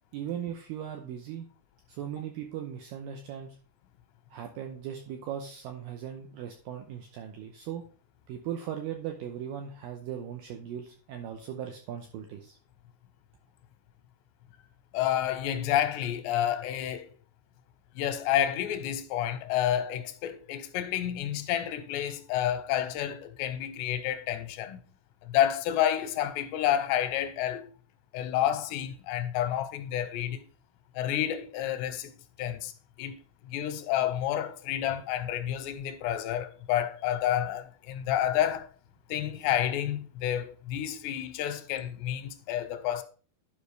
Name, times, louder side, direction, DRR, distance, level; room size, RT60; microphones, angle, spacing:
voice 1, 0.1-1.5 1.9-3.6 4.3-7.8 8.3-12.6, right 9 dB, 80° right, 2.0 m, -38 dB
voice 2, 14.9-17.1 18.0-24.8 25.2-27.7 28.1-30.4 31.0-32.1 32.4-32.7 33.0-33.2 33.5-38.7 39.1-43.0, left 11 dB, 90° left, 2.8 m, -29 dB
11.5 x 5.2 x 3.3 m
omnidirectional pair, 4.9 m